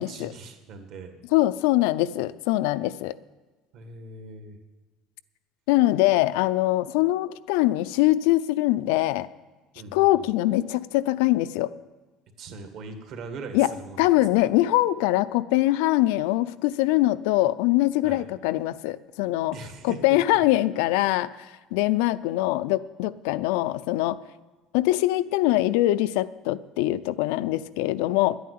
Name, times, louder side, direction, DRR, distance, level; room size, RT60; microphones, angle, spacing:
voice 1, 0.0-1.2 3.7-4.6 9.8-10.2 12.4-14.1 14.3-14.5 18.0-18.2 19.5-20.2, right 4 dB, 45° right, 5 dB, 1.8 m, -40 dB
voice 2, 1.3-3.1 5.7-9.3 9.9-11.7 13.5-13.7 14.0-19.5 19.8-21.3 21.7-24.2 24.7-28.4, left 16 dB, 80° left, 15 dB, 0.5 m, -23 dB
11.0 x 9.4 x 9.5 m, 1.3 s
cardioid pair, 170°, 0 cm